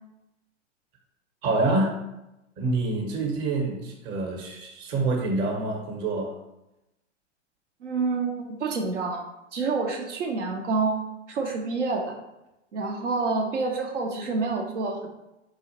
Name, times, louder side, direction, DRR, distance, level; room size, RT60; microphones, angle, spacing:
voice 1, 1.4-1.9 2.6-6.3, right 2 dB, 30° right, 1 dB, 0.8 m, -26 dB
voice 2, 7.8-9.2 9.5-11.0 11.3-12.1 12.7-15.1, right 4 dB, 75° right, 1 dB, 0.6 m, -28 dB
3.8 x 2.4 x 2.8 m, 0.93 s
figure-of-eight pair, 100°, 36 cm